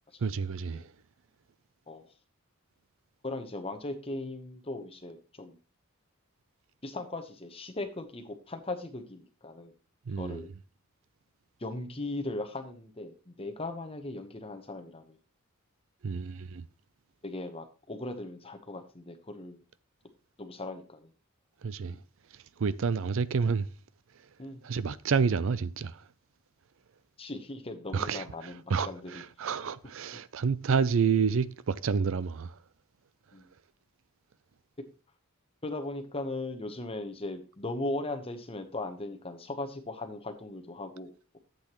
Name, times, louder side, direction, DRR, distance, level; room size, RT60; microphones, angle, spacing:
voice 1, 0.2-0.9 10.1-10.5 16.0-16.7 21.6-22.0 22.3-23.7 24.2-24.3 24.6-26.1 27.9-32.6, right 5 dB, 60° right, 0.4 m, -29 dB
voice 2, 3.2-5.6 6.8-9.7 10.2-10.5 11.6-15.2 17.2-19.6 20.4-21.1 24.4-24.6 27.2-29.1 33.3-33.5 35.6-41.4, left 2 dB, 25° left, 1.0 m, -38 dB
12.0 x 7.8 x 3.0 m
head